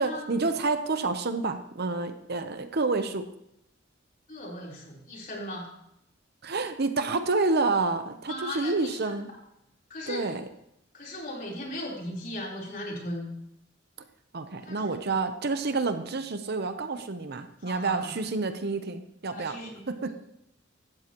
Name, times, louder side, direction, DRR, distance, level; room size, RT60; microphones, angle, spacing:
voice 1, 0.0-3.3 6.4-9.3 10.1-10.4 14.3-19.6 19.9-20.1, right 3 dB, 55° right, 9 dB, 0.9 m, -29 dB
voice 2, 4.3-5.7 8.3-9.1 9.9-10.3 10.9-13.3 14.6-15.0 17.6-18.1 19.3-20.1, left 1 dB, 45° left, -3 dB, 4.0 m, -37 dB
16.0 x 12.5 x 3.1 m, 0.81 s
head